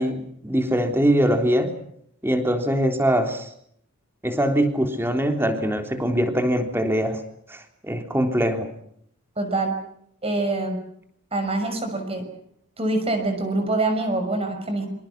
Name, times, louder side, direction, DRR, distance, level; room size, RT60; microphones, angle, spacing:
voice 1, 0.0-1.7 2.2-3.5 4.2-7.2 7.5-8.7, equal, 10° right, 5 dB, 3.5 m, -22 dB
voice 2, 9.4-9.7 10.2-10.8 11.3-12.3 12.8-14.9, right 2 dB, 25° right, 5 dB, 5.9 m, -25 dB
26.5 x 26.0 x 6.1 m, 0.69 s
head